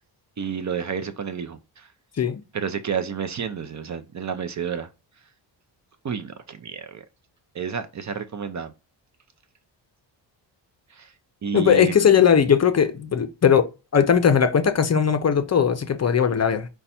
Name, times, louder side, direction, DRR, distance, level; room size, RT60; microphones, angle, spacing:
voice 1, 0.4-1.9 2.5-4.9 6.0-7.0 7.5-8.7 10.9-11.1 11.4-12.2, right 7 dB, 40° right, 0.5 m, -30 dB
voice 2, 11.5-13.7 13.9-16.7, left 7 dB, 35° left, 0.6 m, -19 dB
5.2 x 2.3 x 4.2 m
cardioid pair, 105°, 45 cm